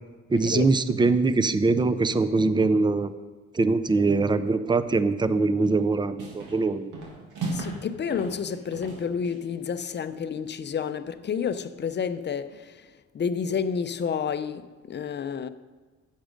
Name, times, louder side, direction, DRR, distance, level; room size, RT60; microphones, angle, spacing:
voice 1, 0.3-3.1 3.5-6.9, right 3 dB, 15° right, 0.5 m, -23 dB
sound 1, 5.6-5.9 6.2-6.6 6.9-7.8 8.1-9.5, right 3 dB, 85° right, 2.4 m, -36 dB
voice 2, 7.5-15.5, left 6 dB, 35° left, 0.6 m, -30 dB
8.8 x 7.3 x 5.2 m
cardioid pair, 90°, 30 cm